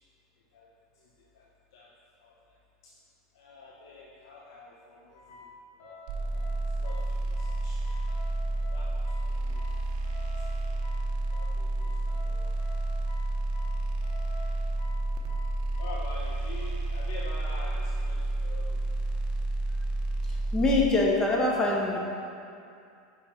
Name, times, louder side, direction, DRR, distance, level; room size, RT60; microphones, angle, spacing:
voice 1, 0.9-1.9 2.2-2.6 2.8-2.9 3.3-8.0 8.7-9.7 10.4-10.5 11.3-12.6 15.1-15.2 15.8-18.8, left 3 dB, 80° left, -5 dB, 0.9 m, -47 dB
sound 1, 5.1-16.0, left 3 dB, 60° left, 1.5 m, -49 dB
sound 2, 6.1-20.8, right 2 dB, 45° right, 0.8 m, -30 dB
voice 2, 20.2-22.0, left 2 dB, 20° left, -2 dB, 1.3 m, -24 dB
6.2 x 5.4 x 4.6 m, 2.5 s
supercardioid pair, 110°, 2 cm